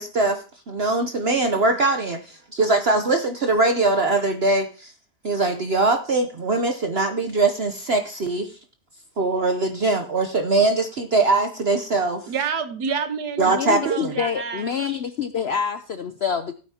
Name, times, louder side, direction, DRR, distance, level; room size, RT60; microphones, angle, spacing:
voice 1, 0.0-4.9 5.2-8.5 9.2-12.2 13.4-14.1 14.8-15.0, right 3 dB, 50° right, 6 dB, 0.8 m, -22 dB
voice 2, 12.3-14.8, right 6 dB, 75° right, 8 dB, 1.7 m, -28 dB
voice 3, 13.5-16.5, left 7 dB, 70° left, 10 dB, 0.6 m, -27 dB
16.0 x 9.1 x 2.8 m, 0.36 s
omnidirectional pair, 1.7 m